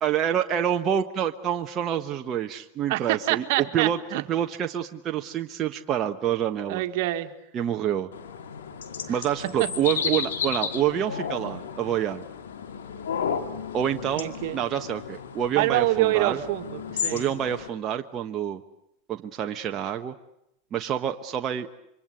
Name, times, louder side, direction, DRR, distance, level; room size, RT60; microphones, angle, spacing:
voice 1, 0.0-4.0 4.3-6.8 7.5-8.1 9.1-12.2 13.7-16.4 17.1-18.6 19.1-20.1 20.7-21.7, right 10 dB, 35° right, 4 dB, 1.2 m, -27 dB
voice 2, 2.9-4.2 6.7-7.3 14.2-14.6 15.6-17.3, right 16 dB, 65° right, 8 dB, 1.9 m, -26 dB
sound 1, 8.1-17.7, left 7 dB, 90° left, 2.5 m, -33 dB
27.5 x 24.5 x 8.2 m, 0.80 s
hypercardioid pair, 110°, 0 cm